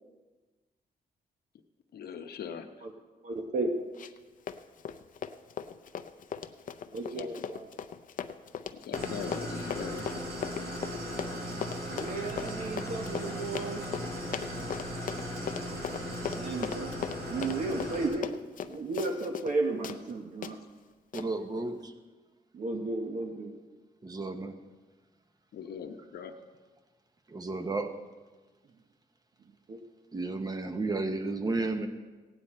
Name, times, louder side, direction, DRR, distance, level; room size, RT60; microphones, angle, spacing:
voice 1, 1.9-2.7 6.9-7.5 8.7-10.0 25.5-26.3, left 7 dB, 75° left, 6 dB, 0.9 m, -41 dB
voice 2, 3.2-3.8 6.9-7.7 11.8-13.9 16.3-16.9 17.3-18.3 18.7-20.6 22.5-23.5 29.7-29.8, right 3 dB, 50° right, 2 dB, 1.0 m, -33 dB
Run, 4.0-4.2 4.5-19.6 19.8-20.0 20.4-20.5 21.1-21.3, left 8 dB, 55° left, 0.6 m, -38 dB
Idling, 8.9-18.1, equal, 85° right, 3.5 m, -37 dB
voice 3, 21.1-21.9 24.0-24.6 27.3-27.9 30.1-31.9, right 3 dB, 25° right, 7 dB, 0.9 m, -32 dB
16.5 x 9.5 x 4.3 m, 1.3 s
wide cardioid pair, 145°, 16 cm